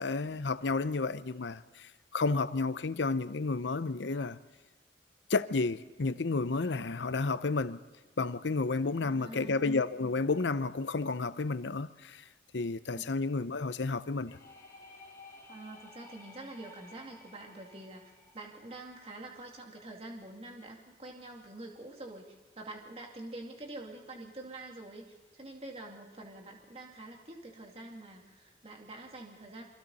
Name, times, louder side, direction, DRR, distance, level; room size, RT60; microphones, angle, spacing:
voice 1, 0.0-4.4 5.3-7.8 8.2-12.2 12.5-14.4, left 3 dB, 75° left, 0.7 m, -31 dB
voice 2, 9.0-9.6 12.9-13.0 15.5-29.6, right 2 dB, 35° right, 2.5 m, -46 dB
sound 1, 14.2-19.9, left 2 dB, 20° left, 2.8 m, -55 dB
28.5 x 24.5 x 4.2 m
head